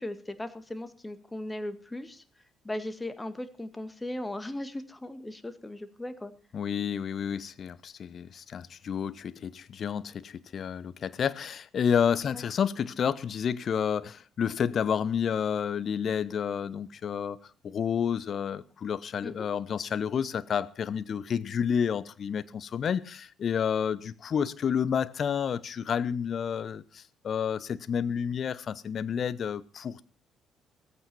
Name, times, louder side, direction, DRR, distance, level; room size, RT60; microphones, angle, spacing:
voice 1, 0.0-2.2 2.6-6.3 12.3-12.4 19.2-19.3, left 1 dB, 15° left, 1.9 m, -37 dB
voice 2, 6.5-17.4 17.6-30.0, left 7 dB, 45° left, 0.9 m, -30 dB
15.5 x 15.0 x 4.4 m
figure-of-eight pair, 45°, 0 cm